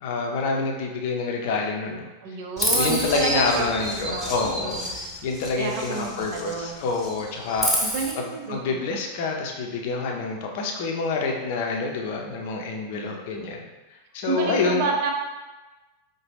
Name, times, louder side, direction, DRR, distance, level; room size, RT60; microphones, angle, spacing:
voice 1, 0.0-2.1 2.7-7.7 8.1-13.6 13.9-14.9, left 4 dB, 50° left, 1 dB, 0.6 m, -27 dB
voice 2, 2.2-3.7 4.0-5.0 5.6-6.8 7.8-9.0 12.9-13.2 14.3-15.1, right 4 dB, 50° right, 1 dB, 0.6 m, -30 dB
Chirp tweet, 2.6-6.6 6.9-8.1, equal, 5° right, 0.9 m, -29 dB
4.8 x 2.2 x 3.3 m, 1.2 s
figure-of-eight pair, 90°, 0 cm